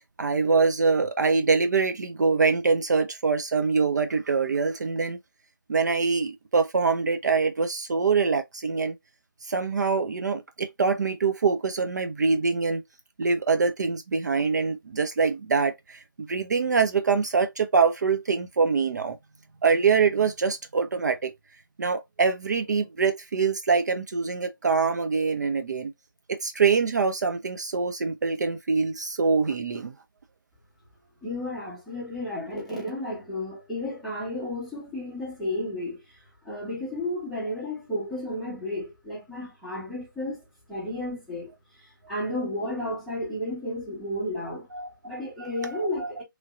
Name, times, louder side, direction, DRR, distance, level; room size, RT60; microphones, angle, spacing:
voice 1, 0.2-5.2 5.7-9.0 9.4-12.8 13.2-19.2 19.6-21.3 21.8-25.9 26.3-29.9 44.7-44.9 45.6-46.2, right 5 dB, 55° right, 0.4 m, -24 dB
voice 2, 31.2-40.4 40.7-41.5 41.8-44.7 45.0-46.2, left 1 dB, ahead, 0.9 m, -32 dB
3.0 x 2.6 x 2.3 m
figure-of-eight pair, 150°, 12 cm